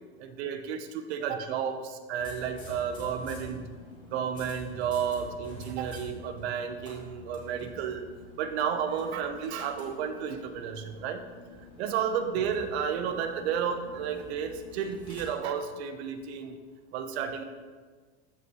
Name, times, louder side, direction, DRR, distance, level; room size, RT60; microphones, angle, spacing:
voice 1, 0.2-3.7 4.1-8.1 8.4-11.3 11.8-16.6 16.9-17.4, right 7 dB, 70° right, 8 dB, 1.0 m, -32 dB
sound 1, 2.2-15.2, left 2 dB, 15° left, 2.3 m, -48 dB
14.0 x 5.6 x 3.1 m, 1.5 s
supercardioid pair, 135°, 33 cm